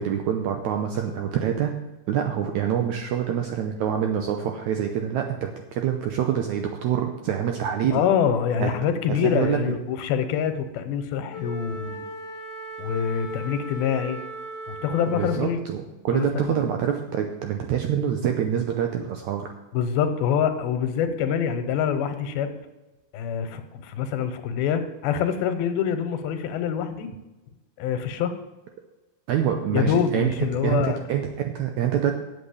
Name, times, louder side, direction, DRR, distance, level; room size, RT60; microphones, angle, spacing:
voice 1, 0.0-1.7 2.1-8.0 8.6-8.7 9.1-9.6 15.1-19.5 29.3-30.3 30.6-32.1, right 9 dB, 80° right, 4 dB, 1.7 m, -26 dB
voice 2, 7.9-12.0 12.8-14.2 14.7-15.6 16.1-16.6 19.7-22.5 23.1-27.1 27.8-28.4 29.7-31.0, left 8 dB, 85° left, 9 dB, 2.8 m, -25 dB
Wind instrument woodwind instrument, 11.3-15.7, right 1 dB, 45° left, 0.8 m, -37 dB
8.1 x 7.1 x 8.4 m, 1.1 s
omnidirectional pair, 4.3 m